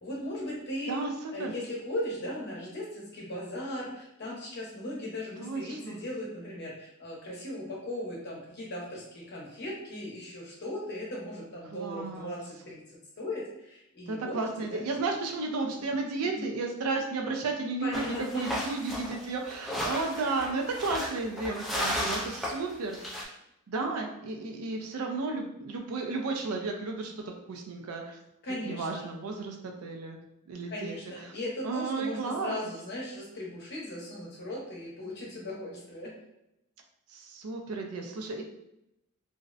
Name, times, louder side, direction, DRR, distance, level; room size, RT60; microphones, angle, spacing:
voice 1, 0.0-1.0 1.3-14.4 14.7-14.8 16.2-16.5 17.8-18.5 28.4-29.1 30.7-36.1, left 1 dB, 50° left, -4 dB, 0.8 m, -38 dB
voice 2, 0.9-1.5 5.4-6.0 11.7-12.4 14.1-23.0 23.7-28.2 28.6-30.2 30.5-30.9 31.6-32.6 37.1-38.4, right 3 dB, 75° right, 2 dB, 0.4 m, -33 dB
sound 1, 17.9-23.2, equal, ahead, 0.3 m, -34 dB
2.5 x 2.0 x 2.4 m, 0.83 s
head